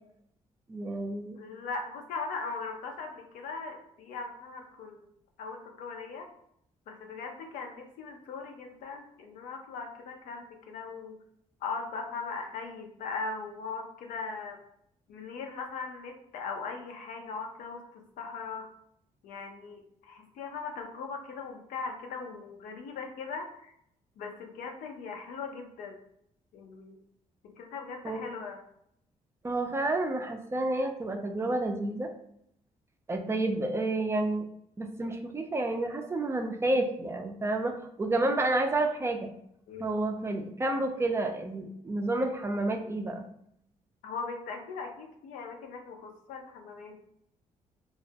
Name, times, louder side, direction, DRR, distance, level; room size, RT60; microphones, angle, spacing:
voice 1, 0.7-1.4 28.0-28.2 29.4-32.1 33.1-34.4 34.8-39.3 39.8-43.2, right 2 dB, 20° right, 5 dB, 0.3 m, -30 dB
voice 2, 1.3-5.1 5.4-6.3 6.9-11.2 11.6-14.6 15.1-18.7 19.2-23.7 24.2-26.0 26.5-27.0 27.4-28.6 39.7-39.9 44.0-47.0, left 4 dB, 90° left, 3 dB, 0.5 m, -39 dB
2.2 x 2.1 x 2.7 m, 0.73 s
cardioid pair, 95°, 13 cm